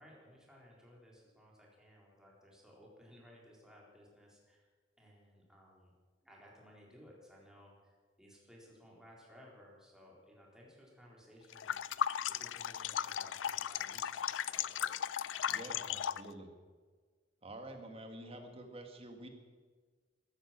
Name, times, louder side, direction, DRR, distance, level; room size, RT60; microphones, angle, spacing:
voice 1, 0.0-4.7 5.0-5.9 6.2-16.2, equal, 5° right, -3 dB, 4.0 m, -59 dB
sound 1, 11.5-16.3, left 9 dB, 85° left, 0.4 m, -36 dB
voice 2, 15.5-16.5 17.4-19.3, right 1 dB, 30° right, 4 dB, 2.0 m, -48 dB
14.0 x 13.5 x 7.6 m, 1.5 s
head